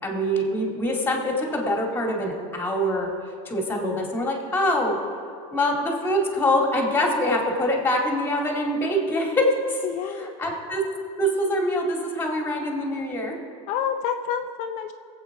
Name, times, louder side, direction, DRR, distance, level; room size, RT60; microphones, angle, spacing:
voice 1, 0.0-3.1 3.5-5.0 5.5-10.8 11.2-13.4, equal, 10° left, 0 dB, 2.2 m, -24 dB
voice 2, 9.8-10.3 13.7-14.9, left 8 dB, 40° left, 6 dB, 0.6 m, -28 dB
21.0 x 8.0 x 4.8 m, 2.3 s
supercardioid pair, 145°, 18 cm